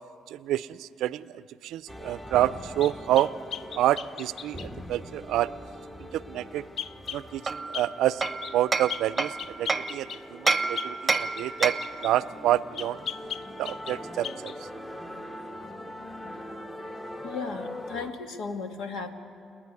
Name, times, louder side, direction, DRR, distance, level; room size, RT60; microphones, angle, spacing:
voice 1, 0.3-3.3 3.7-5.5 6.0-6.7 7.1-8.2 8.5-11.7 12.0-13.0 13.6-14.7, right 13 dB, 80° right, 17 dB, 0.5 m, -28 dB
sound 1, 1.9-18.1, left 1 dB, 15° left, 1.5 m, -42 dB
sound 2, 2.8-4.7 6.8-7.2 7.7-7.9 8.2-8.6 8.9-12.1 12.7-14.0 14.2-14.6, left 8 dB, 65° left, 0.5 m, -37 dB
Hammer, 7.5-10.0 10.5-12.0, right 3 dB, 30° right, 0.8 m, -28 dB
voice 2, 17.2-19.1, left 4 dB, 80° left, 6 dB, 1.7 m, -35 dB
29.0 x 9.9 x 9.7 m, 2.4 s
supercardioid pair, 75°, 0 cm